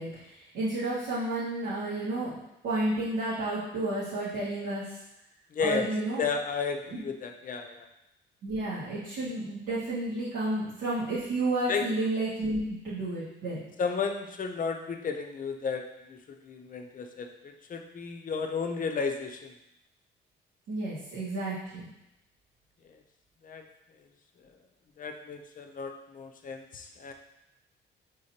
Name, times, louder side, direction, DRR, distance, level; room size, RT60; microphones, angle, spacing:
voice 1, 0.0-2.3 2.6-5.0 5.6-6.2 6.9-7.0 8.4-13.6 20.7-21.8, right 2 dB, 80° right, -11 dB, 1.6 m, -31 dB
voice 2, 5.5-5.9 6.2-7.9 11.7-11.8 13.8-15.8 16.1-19.5 23.4-23.6 25.0-27.1, left 5 dB, 45° left, 4 dB, 0.6 m, -33 dB
5.0 x 3.7 x 2.9 m, 0.88 s
cardioid pair, 90°, 20 cm